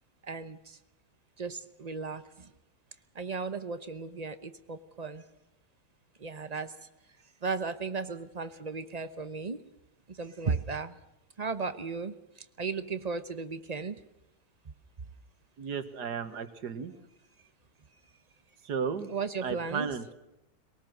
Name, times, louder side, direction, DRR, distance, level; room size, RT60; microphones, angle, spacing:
voice 1, 0.3-0.8 1.4-2.5 3.1-5.2 6.2-6.7 7.4-9.6 10.1-11.0 11.4-12.1 12.6-14.0 19.1-20.0, right 4 dB, 30° right, 11 dB, 0.9 m, -35 dB
voice 2, 15.6-16.9 18.6-19.1 19.4-20.1, right 6 dB, 90° right, 10 dB, 2.0 m, -34 dB
23.5 x 18.5 x 6.5 m, 0.93 s
omnidirectional pair, 1.7 m